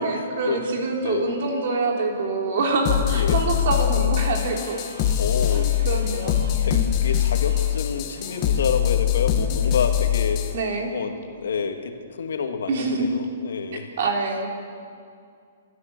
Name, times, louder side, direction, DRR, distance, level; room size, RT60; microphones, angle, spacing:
voice 1, 0.0-4.8 5.5-6.8 9.5-9.6 10.5-10.9 12.7-13.1 14.0-14.5, right 3 dB, 50° right, 1 dB, 3.4 m, -26 dB
voice 2, 1.0-1.3 3.1-3.4 5.2-5.7 6.2-6.3 6.6-6.7 7.0-10.5 10.9-11.9 12.2-13.8, left 6 dB, 80° left, 5 dB, 2.3 m, -28 dB
sound 1, 2.9-10.6, left 11 dB, 25° left, 1.3 m, -23 dB
Electric guitar, 4.2-12.2, right 2 dB, 80° right, 4.8 m, -45 dB
28.5 x 13.0 x 6.9 m, 2.3 s
hypercardioid pair, 170°, 0 cm